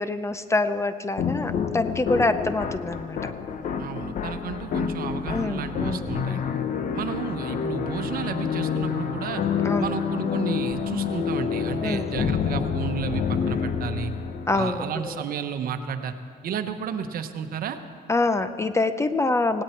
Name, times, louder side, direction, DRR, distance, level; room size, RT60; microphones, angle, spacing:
voice 1, 0.0-3.3 5.3-6.4 9.6-9.9 11.8-12.1 14.5-15.2 18.1-19.6, left 2 dB, 15° left, 11 dB, 0.6 m, -26 dB
sound 1, 1.2-14.8, left 7 dB, 50° left, 0.9 m, -28 dB
voice 2, 3.8-6.4 6.9-9.4 9.8-14.1 14.5-16.1 16.4-17.8, right 7 dB, 60° right, 8 dB, 1.1 m, -32 dB
17.5 x 17.5 x 4.5 m, 2.2 s
cardioid pair, 110°, 17 cm